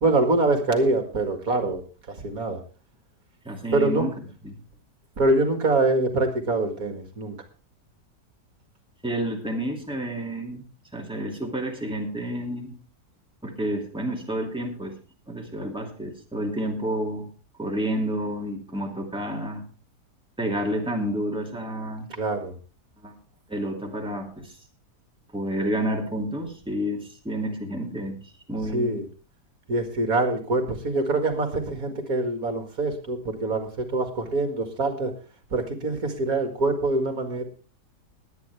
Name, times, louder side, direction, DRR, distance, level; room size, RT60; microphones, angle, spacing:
voice 1, 0.0-2.6 3.7-4.1 5.2-7.4 22.1-22.6 28.7-29.0 29.7-35.1 35.5-37.4, right 2 dB, 60° right, 6 dB, 2.5 m, -24 dB
voice 2, 3.4-4.1 4.4-4.5 9.0-10.6 10.9-12.8 13.4-14.9 15.3-17.3 17.6-19.6 20.4-22.1 23.0-23.2 23.5-24.5 25.3-29.0, equal, 5° right, 0 dB, 2.6 m, -30 dB
20.5 x 9.2 x 3.4 m, 0.34 s
omnidirectional pair, 1.8 m